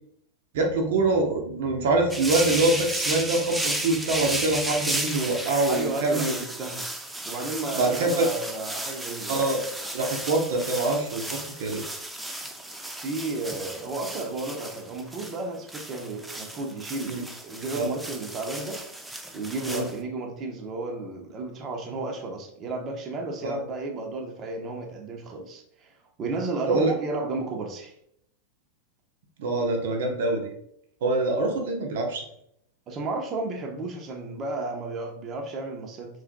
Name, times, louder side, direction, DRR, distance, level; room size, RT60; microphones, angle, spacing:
voice 1, 0.5-6.4 7.7-8.3 9.3-9.6 9.9-11.8 17.1-17.2 17.7-17.9 19.7-19.8 23.4-23.6 26.7-26.9 29.4-30.5 31.0-32.2, right 2 dB, 70° right, 2 dB, 0.9 m, -25 dB
sound 1, 2.1-20.0, right 1 dB, 5° right, 0.6 m, -34 dB
voice 2, 5.7-6.8 7.3-9.4 13.0-18.8 19.3-27.9 32.9-36.2, right 3 dB, 35° right, 2 dB, 1.0 m, -33 dB
4.7 x 4.4 x 2.3 m, 0.71 s
hypercardioid pair, 110°, 0 cm